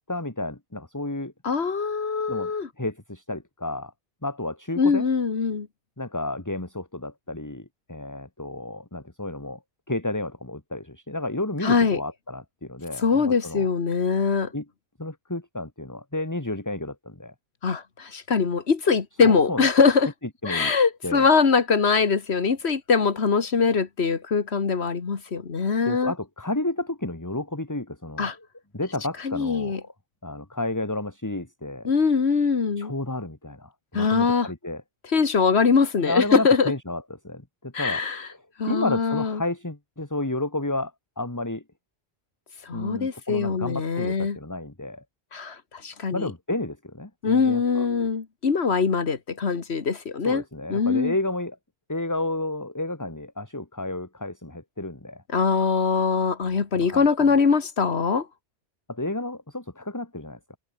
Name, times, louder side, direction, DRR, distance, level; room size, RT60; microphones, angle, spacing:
voice 1, 0.1-1.3 2.3-2.5 2.8-3.9 4.2-5.1 6.0-9.6 9.9-13.7 14.5-14.7 15.0-17.3 19.2-19.7 20.4-20.7 21.0-21.3 25.8-28.5 28.7-29.9 30.2-31.9 32.8-34.8 36.0-38.0 38.3-41.6 42.7-45.0 46.1-47.9 50.2-51.6 51.9-55.2 56.7-57.3 58.9-60.6, left 2 dB, 15° left, 2.1 m, -31 dB
voice 2, 1.4-2.7 4.8-5.7 11.6-12.0 13.0-14.5 17.6-20.1 20.4-26.1 28.2-28.4 29.2-29.8 31.8-32.9 33.9-34.5 35.1-36.7 37.7-38.2 38.6-39.4 42.6-44.4 45.3-46.3 47.2-50.4 50.7-51.1 55.3-58.3, left 5 dB, 90° left, 1.9 m, -22 dB
omnidirectional pair, 1.1 m